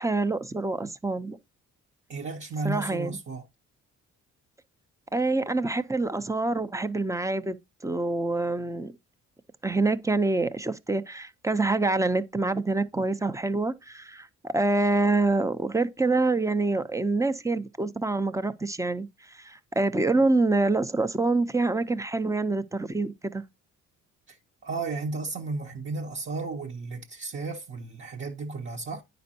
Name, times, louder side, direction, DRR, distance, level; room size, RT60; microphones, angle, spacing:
voice 1, 0.0-1.4 2.6-3.2 5.1-7.6 7.8-8.9 9.6-23.4, right 2 dB, 10° right, 0.6 m, -26 dB
voice 2, 2.1-3.5 24.3-24.4 24.6-29.0, right 3 dB, 40° right, 1.0 m, -33 dB
9.3 x 5.3 x 2.8 m
cardioid pair, 90°, 30 cm